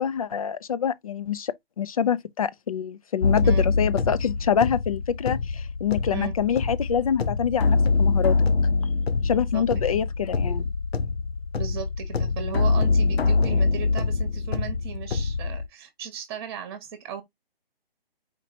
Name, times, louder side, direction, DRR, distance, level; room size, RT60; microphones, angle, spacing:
voice 1, 0.0-8.3 9.2-10.7, left 8 dB, 40° left, 0.4 m, -26 dB
sound 1, 3.2-15.7, left 4 dB, 90° left, 0.7 m, -24 dB
voice 2, 9.5-10.0 11.5-17.2, right 8 dB, 25° right, 1.2 m, -36 dB
4.4 x 2.7 x 4.2 m
hypercardioid pair, 155°, 30 cm